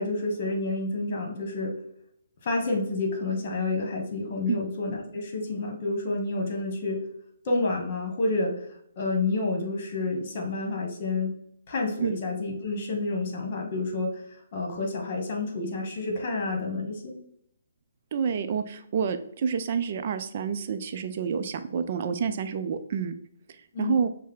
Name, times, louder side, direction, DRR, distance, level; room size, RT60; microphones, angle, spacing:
voice 1, 0.0-1.7 2.4-7.0 7.4-8.5 9.0-11.3 11.7-14.1 14.5-17.1 23.7-24.0, left 3 dB, 45° left, 1 dB, 1.4 m, -29 dB
voice 2, 18.1-23.1 23.8-24.1, right 6 dB, 45° right, 8 dB, 0.5 m, -28 dB
6.2 x 2.2 x 3.8 m, 0.70 s
figure-of-eight pair, 135°, 0 cm